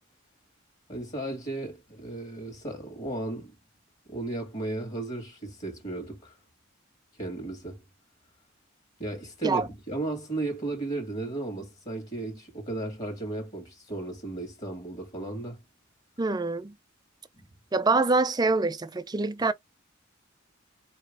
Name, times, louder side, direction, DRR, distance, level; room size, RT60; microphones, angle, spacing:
voice 1, 0.9-3.5 4.1-6.4 7.2-7.8 9.0-15.6 17.4-17.5, right 2 dB, 35° left, 1.8 m, -35 dB
voice 2, 16.2-16.7 17.7-19.5, right 3 dB, 20° right, 0.4 m, -25 dB
4.6 x 2.9 x 3.5 m
head